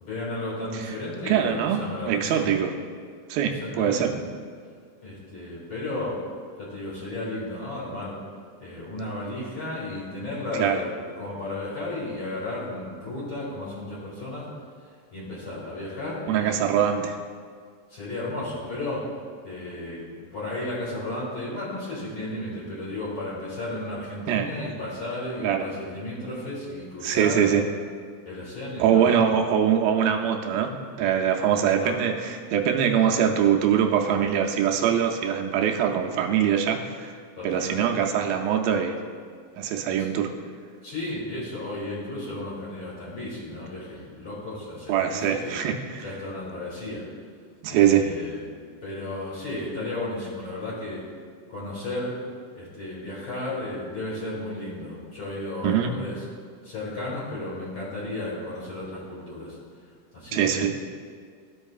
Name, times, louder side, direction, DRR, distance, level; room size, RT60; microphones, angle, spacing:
voice 1, 0.0-2.5 3.4-4.2 5.0-6.2 6.6-8.2 8.6-14.5 15.1-16.7 17.9-19.0 19.4-27.4 28.3-29.4 31.8-32.0 37.4-37.9 40.0-40.1 40.8-45.6 46.0-47.0 47.7-48.4 48.8-51.0 51.5-52.1 52.5-56.2 56.6-59.6 60.1-60.7, left 2 dB, 40° left, -8 dB, 2.4 m, -34 dB
voice 2, 1.2-2.7 3.3-4.1 10.5-10.8 16.3-17.2 24.3-24.5 25.4-25.7 27.0-27.6 28.8-30.7 31.0-39.0 39.6-40.3 44.9-46.1 47.6-48.0 55.6-55.9 60.3-60.7, right 8 dB, 85° right, 2 dB, 2.3 m, -23 dB
13.5 x 5.3 x 2.4 m, 2.1 s
omnidirectional pair, 4.1 m